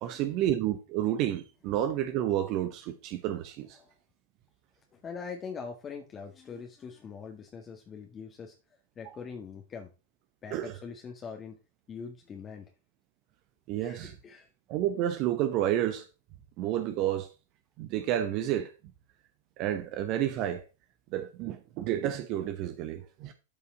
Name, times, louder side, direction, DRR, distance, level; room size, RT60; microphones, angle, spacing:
voice 1, 0.0-3.8 10.5-10.8 13.7-14.2 14.7-16.1 16.6-17.3 17.8-18.7 19.6-20.6 21.1-23.3, right 12 dB, 40° right, 1.0 m, -30 dB
voice 2, 4.9-8.5 9.0-9.9 10.4-11.6 11.9-12.7 13.8-14.5, left 5 dB, 25° left, 1.7 m, -43 dB
12.5 x 5.5 x 4.0 m
figure-of-eight pair, 90°, 0 cm